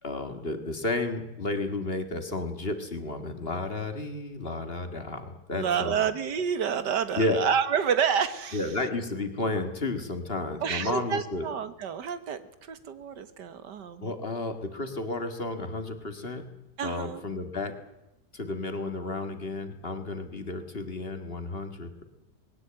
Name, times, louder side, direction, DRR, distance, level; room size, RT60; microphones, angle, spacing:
voice 1, 0.0-6.1 7.2-7.4 8.5-11.5 14.0-16.5 16.8-17.8 18.3-22.0, left 2 dB, 35° left, 8 dB, 2.1 m, -32 dB
voice 2, 5.5-8.6 10.6-14.1 16.8-17.2, right 7 dB, 75° right, 12 dB, 1.9 m, -29 dB
20.0 x 17.5 x 8.9 m, 0.92 s
omnidirectional pair, 1.8 m